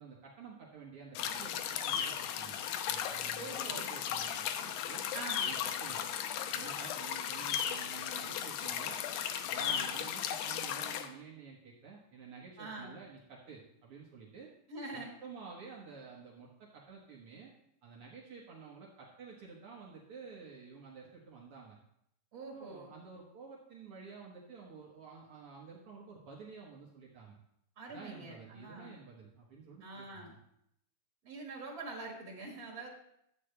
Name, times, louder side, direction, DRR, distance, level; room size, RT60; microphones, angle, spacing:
voice 1, 0.0-5.0 5.4-6.0 6.5-9.0 9.5-14.5 14.9-17.5 17.8-21.8 22.5-27.4 27.9-30.4, right 5 dB, 90° right, -3 dB, 1.2 m, -51 dB
sound 1, 1.2-11.1, left 9 dB, 80° left, 2.3 m, -36 dB
voice 2, 3.4-3.9 5.1-5.5 9.5-9.9 12.6-13.0 14.7-15.1 22.3-22.9 27.8-29.0 29.8-30.3 31.2-32.9, right 3 dB, 50° right, -1 dB, 1.1 m, -44 dB
12.0 x 8.0 x 3.3 m, 0.76 s
omnidirectional pair, 4.4 m